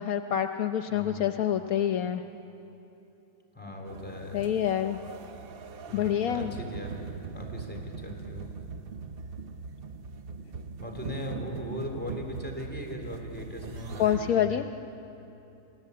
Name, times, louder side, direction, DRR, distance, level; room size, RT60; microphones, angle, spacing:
voice 1, 0.0-2.2 4.3-5.0 5.9-6.5 14.0-14.7, left 9 dB, 70° left, 7 dB, 1.2 m, -27 dB
voice 2, 0.9-1.3 3.5-4.6 5.9-7.0 7.3-8.5 10.8-14.6, left 1 dB, 5° left, 1 dB, 4.0 m, -39 dB
sound 1, 3.8-14.3, right 5 dB, 50° right, 0.8 m, -41 dB
27.5 x 19.5 x 8.5 m, 3.0 s
omnidirectional pair, 1.6 m